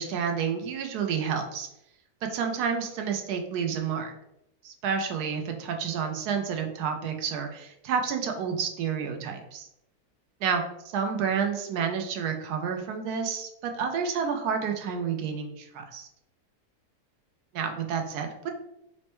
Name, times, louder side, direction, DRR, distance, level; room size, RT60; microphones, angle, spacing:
voice 1, 0.0-1.7 2.3-4.1 4.6-9.7 10.4-10.6 10.9-16.1 17.5-18.5, right 6 dB, 80° right, 4 dB, 1.1 m, -30 dB
4.3 x 2.1 x 2.9 m, 0.81 s
omnidirectional pair, 1.6 m